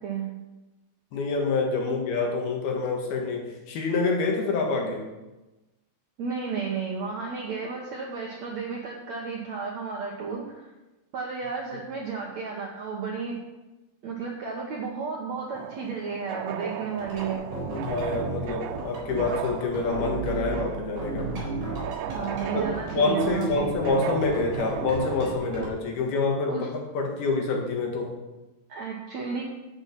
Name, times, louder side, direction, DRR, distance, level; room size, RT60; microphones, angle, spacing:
voice 1, 1.1-5.0 17.8-21.3 22.5-22.6 22.9-26.7 26.9-28.1, left 3 dB, 70° left, 1 dB, 3.5 m, -27 dB
voice 2, 6.2-10.7 11.1-13.4 14.0-17.4 22.1-24.0 26.5-26.7 28.7-29.4, right 5 dB, 65° right, -1 dB, 1.8 m, -33 dB
sound 1, 15.5-25.2, right 10 dB, 85° right, 2.8 m, -37 dB
sound 2, 17.0-20.7 21.0-22.9 23.2-25.7, right 3 dB, 45° right, 5.4 m, -34 dB
10.0 x 8.9 x 6.0 m, 1.1 s
omnidirectional pair, 4.8 m